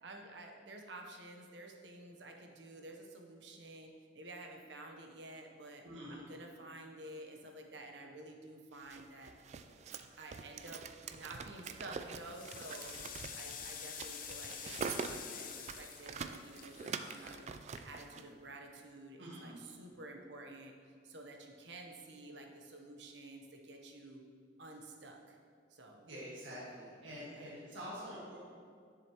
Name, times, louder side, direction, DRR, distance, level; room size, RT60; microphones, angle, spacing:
voice 1, 0.0-5.8 6.1-9.3 10.2-12.9 13.4-17.5 17.8-24.2 24.6-25.4 25.7-26.0 27.1-27.5, right 2 dB, 70° right, 2 dB, 0.9 m, -51 dB
voice 2, 5.8-6.2 19.2-19.6 26.0-28.4, equal, 85° right, -7 dB, 1.7 m, -46 dB
sound 1, 8.8-18.2, right 5 dB, 35° right, 0.3 m, -45 dB
sound 2, 11.1-11.5 12.0-18.2, left 7 dB, 50° left, 0.6 m, -48 dB
10.5 x 6.8 x 3.0 m, 2.2 s
head